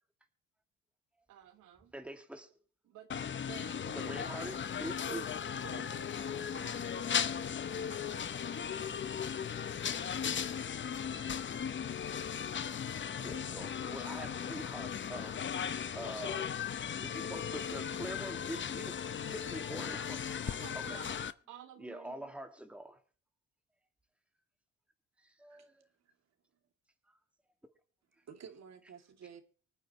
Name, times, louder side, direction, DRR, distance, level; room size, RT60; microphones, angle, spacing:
voice 1, 1.3-1.9 2.8-4.6 5.0-10.2 20.4-22.3, right 10 dB, 80° right, 1.3 m, -53 dB
voice 2, 1.9-2.5 3.9-5.3 13.2-15.4 15.9-16.5 17.0-18.9 19.3-20.2 20.7-21.0 21.8-23.0 25.4-25.7, right 1 dB, 5° right, 2.1 m, -44 dB
sound 1, 3.1-21.3, left 8 dB, 40° left, 0.8 m, -37 dB
voice 3, 28.2-29.4, right 7 dB, 60° right, 2.7 m, -52 dB
24.5 x 9.2 x 3.1 m
cardioid pair, 90°, 30 cm